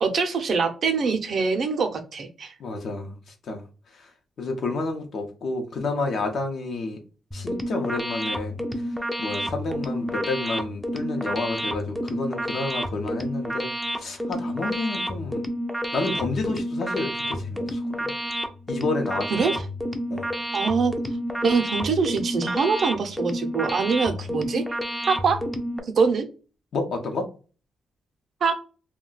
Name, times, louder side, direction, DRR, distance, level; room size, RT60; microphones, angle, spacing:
voice 1, 0.0-2.5 19.3-19.5 20.5-20.9 21.4-24.6 25.1-25.4 25.9-26.2 28.4-28.6, right 5 dB, 55° right, 0.5 m, -23 dB
voice 2, 2.6-3.2 3.5-3.6 4.4-7.0 7.3-8.6 9.2-15.4 15.9-18.1 18.7-19.3 20.1-20.3 24.1-24.2 26.7-27.3, left 3 dB, 65° left, 0.6 m, -30 dB
sound 1, 7.3-25.8, equal, ahead, 0.4 m, -30 dB
2.3 x 2.2 x 3.8 m
cardioid pair, 110°, 0 cm